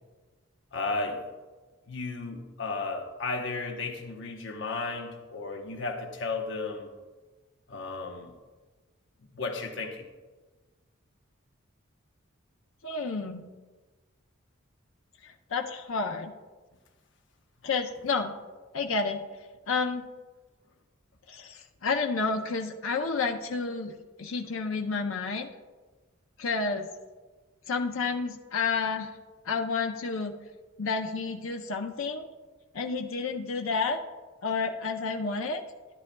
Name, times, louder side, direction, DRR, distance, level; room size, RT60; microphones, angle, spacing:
voice 1, 0.7-1.2 1.9-6.9 7.7-8.3 9.3-10.1, left 3 dB, 60° left, 2 dB, 0.9 m, -34 dB
voice 2, 12.8-13.5 15.2-16.3 17.6-18.3 18.7-19.3 19.7-20.0 21.3-25.5 26.4-26.9 27.7-29.1 29.4-30.4 30.8-32.3 32.7-34.0 34.4-35.6, left 4 dB, 80° left, 4 dB, 0.6 m, -30 dB
13.0 x 10.0 x 2.2 m, 1.3 s
head